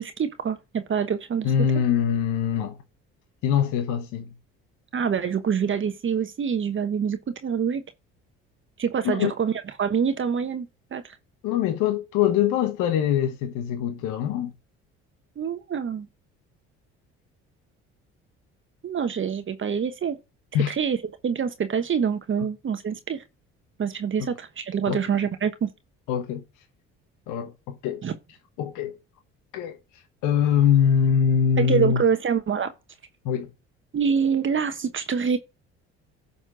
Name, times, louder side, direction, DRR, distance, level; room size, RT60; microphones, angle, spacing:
voice 1, 0.0-1.5 4.9-7.8 8.8-9.5 9.8-11.2 15.4-16.1 18.8-20.2 20.7-21.0 21.2-23.2 23.8-25.7 28.0-28.1 31.6-32.7 33.9-35.4, right 7 dB, 40° right, 1.1 m, -26 dB
voice 2, 1.4-2.8 3.4-4.3 9.0-9.3 11.4-14.5 20.5-20.7 24.2-24.3 24.9-25.0 26.1-26.4 27.3-28.0 28.6-29.0 29.5-32.0 33.2-33.5, left 8 dB, 75° left, 1.1 m, -23 dB
11.0 x 4.3 x 6.2 m
supercardioid pair, 70°, 31 cm